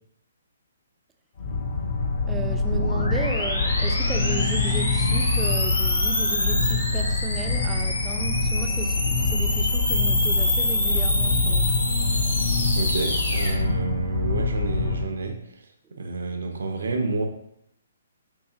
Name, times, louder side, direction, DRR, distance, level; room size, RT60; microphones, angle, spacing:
sound 1, 1.4-15.0, left 3 dB, 55° left, 0.7 m, -25 dB
voice 1, 2.2-11.8, right 4 dB, 15° right, 0.4 m, -35 dB
sound 2, 2.7-13.5, left 2 dB, 85° left, 1.1 m, -27 dB
voice 2, 12.7-15.6 15.9-17.3, right 3 dB, 75° right, 0.6 m, -29 dB
4.7 x 2.7 x 2.7 m
figure-of-eight pair, 135°, 0 cm